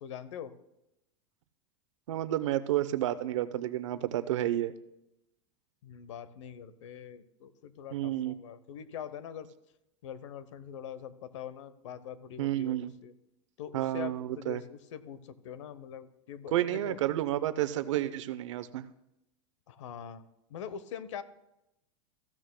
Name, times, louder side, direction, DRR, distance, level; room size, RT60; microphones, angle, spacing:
voice 1, 0.0-0.5 5.8-9.5 10.0-13.1 13.6-17.0 19.7-21.2, left 8 dB, 85° left, 14 dB, 0.9 m, -43 dB
voice 2, 2.1-4.7 7.9-8.3 12.4-12.9 13.7-14.6 16.5-18.8, right 13 dB, 85° right, 13 dB, 0.7 m, -30 dB
14.5 x 12.5 x 2.2 m, 0.87 s
supercardioid pair, 175°, 15 cm